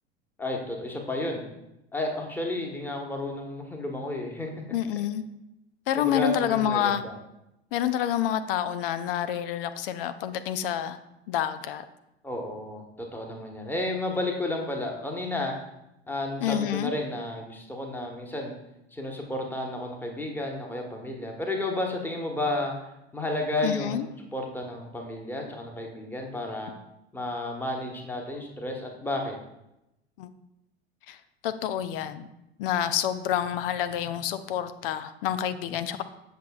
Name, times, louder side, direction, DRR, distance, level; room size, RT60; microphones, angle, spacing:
voice 1, 0.4-1.4 1.9-4.5 6.0-7.2 12.2-15.5 16.1-18.5 18.9-22.7 23.1-26.7 27.1-29.4, left 2 dB, 5° left, 1 dB, 1.2 m, -32 dB
voice 2, 4.7-5.2 5.9-7.0 7.7-11.0 11.3-11.8 16.4-16.9 23.6-24.1 30.2-30.3 31.1-31.2 31.4-32.3 32.6-36.0, left 10 dB, 60° left, 11 dB, 0.5 m, -28 dB
8.0 x 6.3 x 2.4 m, 0.89 s
figure-of-eight pair, 80°, 32 cm